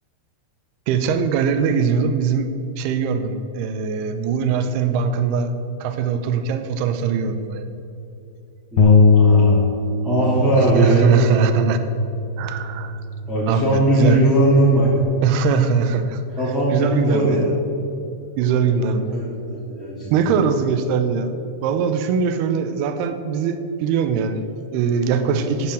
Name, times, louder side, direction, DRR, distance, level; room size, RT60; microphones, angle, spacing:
voice 1, 0.9-2.5 2.8-5.5 5.8-7.6 10.6-11.8 12.4-13.0 13.5-14.2 15.2-16.2 16.7-17.5 18.4-19.2 20.1-21.3 21.6-25.7, right 6 dB, 80° right, 9 dB, 2.7 m, -21 dB
voice 2, 8.7-9.7 10.0-11.1 13.3-14.9 16.4-17.5 18.7-20.3 25.1-25.3, right 1 dB, ahead, -11 dB, 2.3 m, -20 dB
Bass guitar, 8.8-15.0, left 3 dB, 70° left, 2.6 m, -20 dB
11.5 x 8.9 x 7.8 m, 2.7 s
omnidirectional pair, 4.6 m